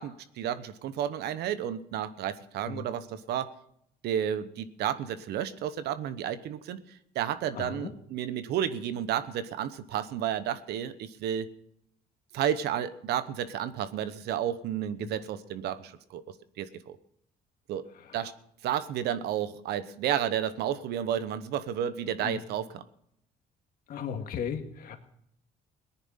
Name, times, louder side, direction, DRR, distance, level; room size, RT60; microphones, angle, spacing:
voice 1, 0.0-3.5 4.0-11.5 12.3-16.2 16.6-17.0 17.7-17.8 18.1-18.3 18.6-22.8, right 10 dB, 75° right, 13 dB, 1.0 m, -32 dB
voice 2, 7.6-7.9 15.0-15.1 18.1-18.2 22.2-22.4 23.9-25.0, left 7 dB, 60° left, 5 dB, 1.9 m, -36 dB
18.5 x 10.0 x 5.7 m, 0.73 s
cardioid pair, 110°, 17 cm